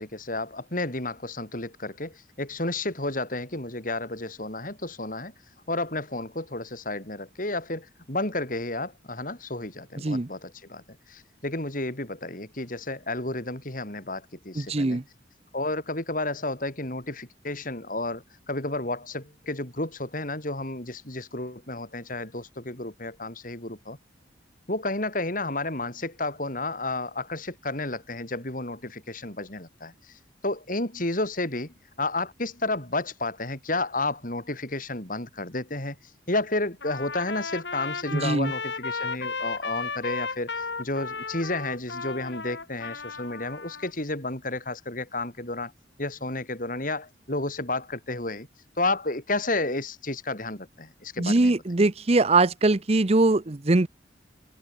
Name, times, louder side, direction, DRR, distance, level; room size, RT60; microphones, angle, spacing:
voice 1, 0.0-5.3 5.7-15.0 15.5-24.0 24.7-36.0 36.3-45.7 46.0-48.5 48.8-51.5, left 2 dB, 50° left, 5.1 m, -31 dB
voice 2, 14.6-15.0 38.1-38.5 51.2-53.9, right 2 dB, 35° right, 0.7 m, -22 dB
Trumpet, 36.8-43.9, left 4 dB, 75° left, 4.4 m, -34 dB
open air
head